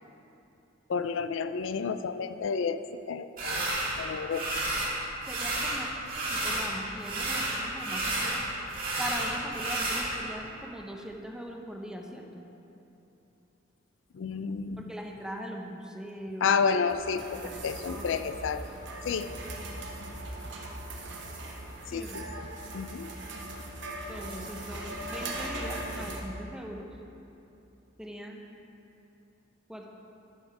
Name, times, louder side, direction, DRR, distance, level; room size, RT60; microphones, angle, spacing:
voice 1, 0.9-2.8 3.1-3.6 4.0-4.5 14.1-14.9 16.4-18.6 19.0-19.3 21.9-22.5 22.7-23.1, left 5 dB, 70° left, 11 dB, 0.4 m, -30 dB
sound 1, 3.4-3.9 4.3-4.9 5.2-6.7 7.0-10.1, right 2 dB, 45° right, 2.2 m, -31 dB
voice 2, 5.2-5.9 6.3-8.4 9.0-12.4 14.8-16.5 17.4-17.6 17.9-18.0 21.9-22.3 24.1-26.9 28.0-28.4 29.7-29.9, equal, 5° right, 1 dB, 0.7 m, -41 dB
sound 2, 16.9-26.2, right 1 dB, 65° right, 1.1 m, -39 dB
10.0 x 6.4 x 4.8 m, 2.9 s
head